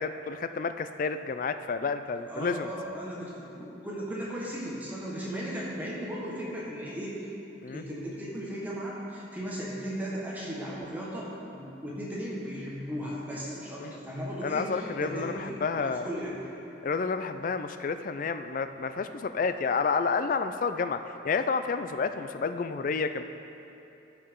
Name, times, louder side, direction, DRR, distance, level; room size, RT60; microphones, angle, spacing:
voice 1, 0.0-2.7 7.6-7.8 13.8-13.9 14.4-16.1 16.8-21.0 21.2-23.2, left 5 dB, 45° left, 10 dB, 0.3 m, -30 dB
voice 2, 2.3-7.2 7.7-15.4 15.7-16.5, equal, 10° right, -6 dB, 1.3 m, -36 dB
14.0 x 5.7 x 3.7 m, 2.9 s
head